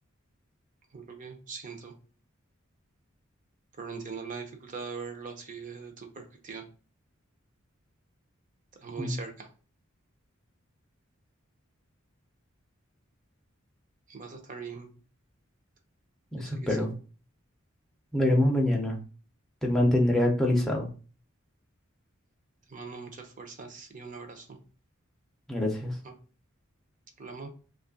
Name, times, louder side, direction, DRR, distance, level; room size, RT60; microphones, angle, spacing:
voice 1, 0.9-1.9 3.8-6.6 8.8-9.5 14.1-14.9 16.3-16.9 22.7-24.6 26.0-26.1 27.2-27.5, right 5 dB, 40° right, 5 dB, 0.6 m, -41 dB
voice 2, 16.3-16.9 18.1-19.0 19.6-20.9 25.5-26.0, left 1 dB, ahead, -1 dB, 0.6 m, -25 dB
3.1 x 2.4 x 3.7 m, 0.37 s
head